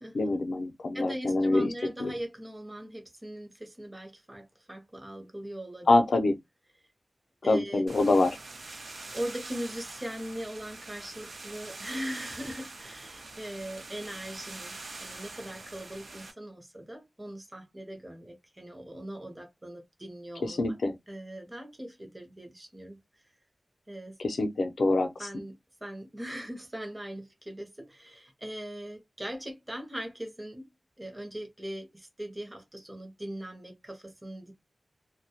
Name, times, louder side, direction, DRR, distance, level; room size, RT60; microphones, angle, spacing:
voice 1, 0.1-1.7 2.0-2.1 5.9-6.4 7.5-8.4 20.4-20.9 24.2-25.1, left 2 dB, 85° left, 0.5 m, -25 dB
voice 2, 0.9-6.2 7.4-7.8 9.1-20.8 21.1-23.0 23.9-24.2 25.2-30.7 31.0-34.5, right 1 dB, 20° right, 0.7 m, -40 dB
sound 1, 7.9-16.3, right 3 dB, 80° right, 0.7 m, -44 dB
2.2 x 2.0 x 2.7 m
wide cardioid pair, 100°, 0 cm